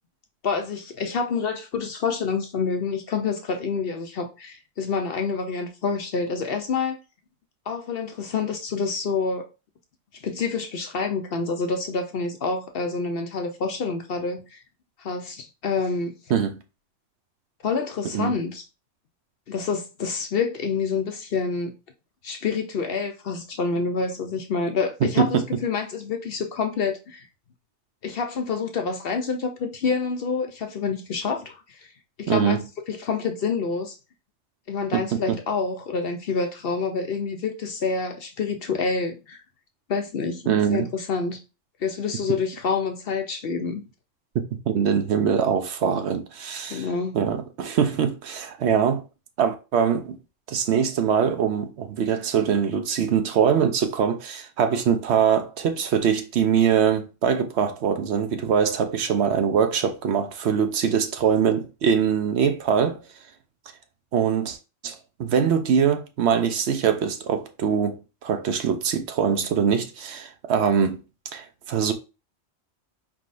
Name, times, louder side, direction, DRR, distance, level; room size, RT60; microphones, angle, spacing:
voice 1, 0.4-7.0 7.7-9.5 10.1-14.6 15.0-16.2 17.6-18.6 19.5-21.7 22.2-27.2 28.0-31.9 32.2-32.6 32.9-34.0 34.7-39.4 39.9-40.4 40.7-41.4 41.8-43.8 46.7-47.2, left 5 dB, 60° left, 0.7 m, -27 dB
voice 2, 16.3-16.6 18.1-18.3 25.0-25.4 32.3-32.6 34.9-35.4 40.5-40.9 44.7-46.9 47.1-49.0 49.4-50.2 50.5-63.0 64.1-64.6 64.8-71.0 71.3-71.9, right 7 dB, 65° right, 0.8 m, -23 dB
4.6 x 3.7 x 2.5 m
omnidirectional pair, 1.3 m